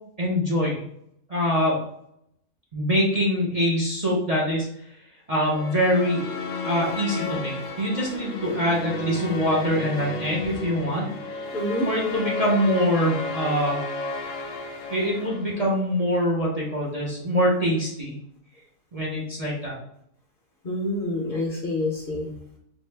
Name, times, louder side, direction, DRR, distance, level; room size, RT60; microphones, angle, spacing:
voice 1, 0.2-0.8 1.3-1.8 2.7-4.7 5.3-6.2 6.6-11.1 11.8-13.8 14.9-18.2 18.9-19.8, equal, 40° right, -5 dB, 0.6 m, -24 dB
sound 1, 5.4-15.8, left 3 dB, 75° left, 0.9 m, -33 dB
voice 2, 11.5-11.9 20.6-22.3, left 1 dB, 50° left, -2 dB, 0.8 m, -27 dB
4.4 x 2.0 x 3.3 m, 0.75 s
omnidirectional pair, 1.4 m